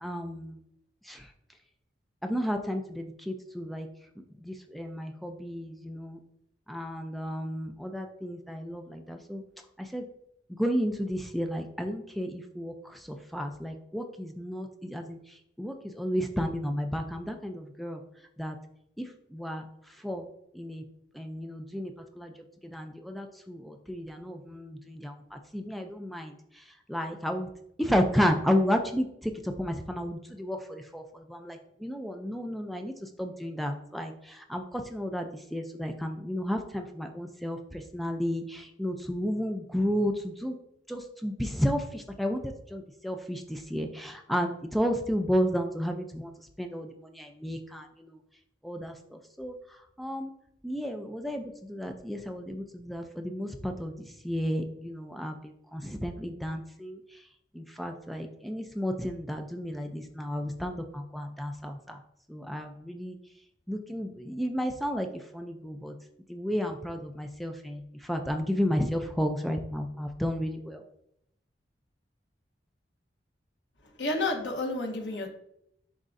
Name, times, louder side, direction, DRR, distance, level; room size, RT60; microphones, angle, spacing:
voice 1, 0.0-0.6 1.1-1.2 2.2-3.9 4.4-6.2 6.7-9.4 9.9-10.0 10.5-12.7 13.3-15.2 15.6-18.0 18.4-18.5 19.0-19.1 19.3-19.6 20.0-20.2 20.6-20.8 21.2-21.9 22.2-22.3 22.7-26.3 26.9-27.5 27.8-29.1 29.6-31.0 31.3-32.9 33.2-34.1 34.5-40.5 40.9-42.4 42.7-46.3 46.6-48.1 48.6-48.9 49.4-49.5 50.0-50.3 50.6-51.4 51.7-57.0 57.6-62.0 62.3-63.2 63.7-65.1 65.3-65.9 66.3-67.8 68.1-70.8, equal, ahead, 4 dB, 0.4 m, -32 dB
voice 2, 74.0-75.3, left 2 dB, 90° left, 2 dB, 1.2 m, -30 dB
10.5 x 3.6 x 2.6 m, 0.76 s
head